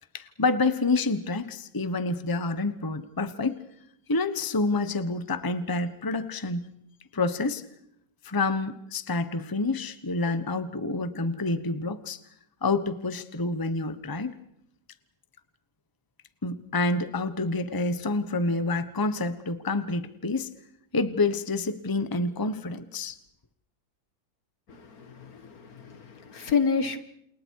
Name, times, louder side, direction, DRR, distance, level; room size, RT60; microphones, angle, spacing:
voice 1, 0.1-3.6 4.1-6.7 7.1-7.6 8.2-12.2 12.6-14.4 16.4-20.5 20.9-23.1, left 3 dB, 15° left, 11 dB, 1.1 m, -28 dB
voice 2, 24.7-27.0, left 5 dB, 65° left, 10 dB, 2.1 m, -29 dB
30.0 x 28.5 x 4.8 m, 0.76 s
omnidirectional pair, 1.7 m